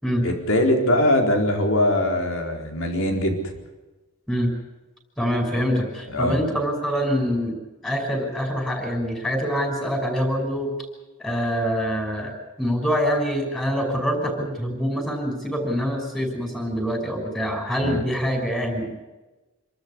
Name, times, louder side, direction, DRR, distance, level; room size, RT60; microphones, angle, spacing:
voice 1, 0.2-3.4 6.1-6.4 17.8-18.0, left 1 dB, 65° left, 3 dB, 4.4 m, -21 dB
voice 2, 5.2-7.6 7.8-10.7 11.2-19.0, equal, 5° left, 3 dB, 5.9 m, -25 dB
27.0 x 13.5 x 9.8 m, 1.1 s
head